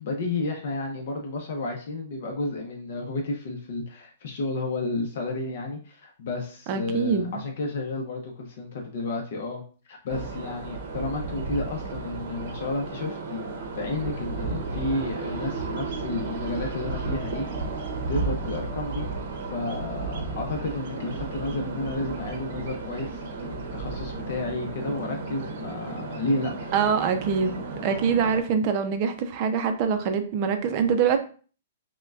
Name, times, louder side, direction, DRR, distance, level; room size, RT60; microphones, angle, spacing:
voice 1, 0.0-13.5 13.7-17.7 18.1-19.1 19.4-26.7 27.8-28.0, left 2 dB, 55° left, 1 dB, 0.7 m, -32 dB
voice 2, 6.7-7.4 26.7-31.2, right 6 dB, 35° right, 7 dB, 0.5 m, -24 dB
sound 1, 10.1-28.4, right 3 dB, 55° right, 0.8 m, -33 dB
5.8 x 2.2 x 2.4 m, 0.40 s
hypercardioid pair, 165°, 0 cm